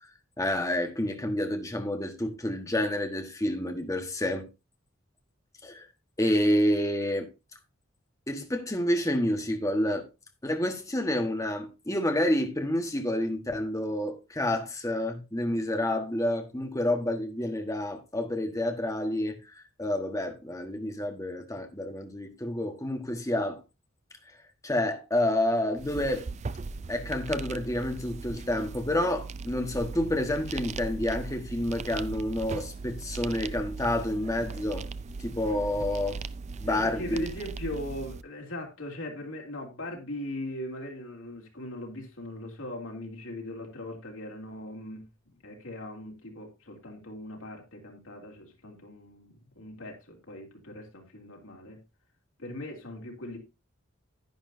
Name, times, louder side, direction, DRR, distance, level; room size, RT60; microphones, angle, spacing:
voice 1, 0.4-4.5 5.6-5.9 6.2-7.3 8.3-10.1 10.4-23.6 24.6-26.3 26.9-34.9 35.2-36.2 36.6-37.3, left 1 dB, 15° left, 1.4 m, -29 dB
sound 1, 25.8-38.2, right 4 dB, 35° right, 0.4 m, -38 dB
voice 2, 36.7-51.8 52.4-53.4, left 1 dB, 85° left, 3.1 m, -40 dB
10.5 x 10.0 x 2.7 m
head